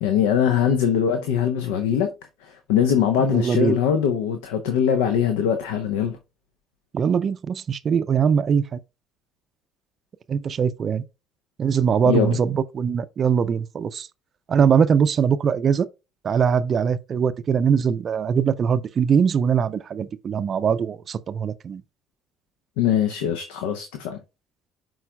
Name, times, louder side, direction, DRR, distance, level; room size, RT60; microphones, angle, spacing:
voice 1, 0.0-2.1 2.4-6.2 12.0-12.4 22.8-24.2, left 8 dB, 75° left, 0.7 m, -22 dB
voice 2, 3.3-3.8 6.9-8.8 10.3-11.0 11.6-14.1 14.5-15.9 16.2-21.8, right 7 dB, 45° right, 0.4 m, -21 dB
11.0 x 3.9 x 2.3 m
hypercardioid pair, 55°, 0 cm